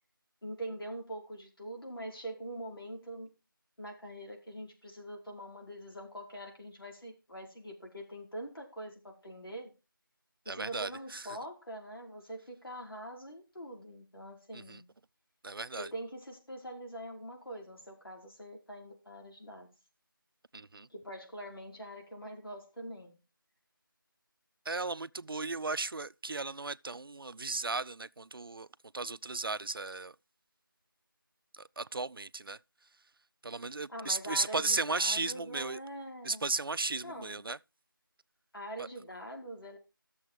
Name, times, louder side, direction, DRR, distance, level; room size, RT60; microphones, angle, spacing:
voice 1, 0.4-3.4 3.8-9.7 10.4-14.9 15.8-19.7 20.9-23.2 33.9-36.5 37.0-37.5 38.5-39.8, right 1 dB, 85° left, 4.7 m, -44 dB
voice 2, 10.5-11.2 14.5-14.8 15.4-15.9 20.5-20.9 24.7-28.7 28.9-30.2 31.5-32.6 33.4-35.8 36.2-37.6 38.8-38.9, right 3 dB, 75° right, 0.5 m, -35 dB
12.5 x 7.0 x 4.7 m
figure-of-eight pair, 180°, 12 cm